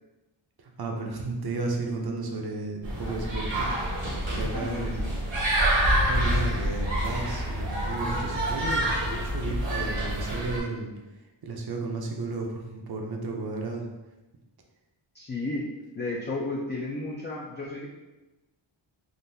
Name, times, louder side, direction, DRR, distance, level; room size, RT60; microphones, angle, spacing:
voice 1, 0.6-5.0 6.1-10.9 11.4-13.9, right 3 dB, 50° right, 1 dB, 0.7 m, -33 dB
sound 1, 2.8-10.6, right 1 dB, 70° right, 1.1 m, -27 dB
voice 2, 4.5-5.2 15.1-15.7 15.9-17.9, left 2 dB, 25° left, -4 dB, 0.4 m, -33 dB
3.8 x 2.5 x 2.6 m, 1.1 s
wide cardioid pair, 105°, 48 cm